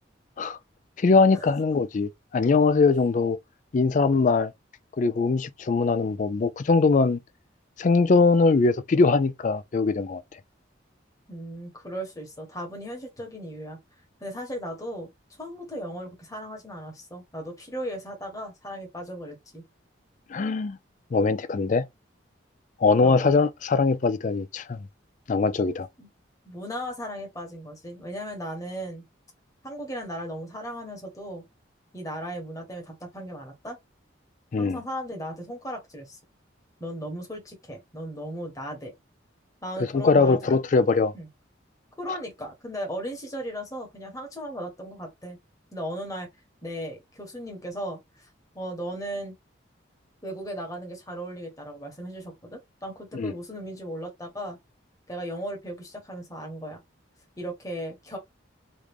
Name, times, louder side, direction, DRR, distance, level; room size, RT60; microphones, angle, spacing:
voice 1, 1.0-3.4 3.7-4.5 5.0-7.2 7.8-10.2 20.3-20.8 21.1-21.9 22.8-24.8 25.3-25.9 34.5-34.8 39.9-41.1 53.1-53.3, left 4 dB, 40° left, 0.3 m, -21 dB
voice 2, 11.3-13.8 14.2-15.1 15.4-19.6 23.0-23.4 26.0-26.1 26.4-29.0 29.6-31.4 31.9-33.8 34.6-36.2 36.8-38.9 39.6-40.6 41.1-41.3 42.0-45.4 45.7-46.3 46.6-48.0 48.5-49.3 50.2-54.6 55.1-56.8 57.4-58.2, equal, 15° left, 1.2 m, -36 dB
3.0 x 2.5 x 3.5 m
head